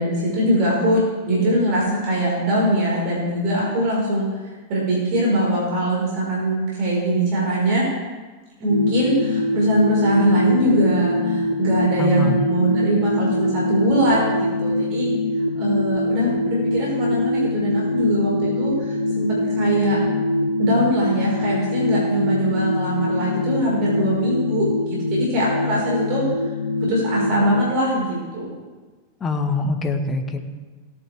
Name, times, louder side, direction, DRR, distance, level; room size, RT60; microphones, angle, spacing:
voice 1, 0.0-4.2 4.7-7.8 8.6-15.1 15.5-20.0 20.6-26.2 26.8-28.5, right 1 dB, 45° right, -5 dB, 4.7 m, -21 dB
sound 1, 8.7-27.6, left 2 dB, 70° left, 0.8 m, -24 dB
voice 2, 12.0-12.4 29.2-30.5, left 3 dB, 20° left, 6 dB, 1.4 m, -24 dB
17.0 x 10.0 x 3.5 m, 1.3 s
figure-of-eight pair, 90°, 0 cm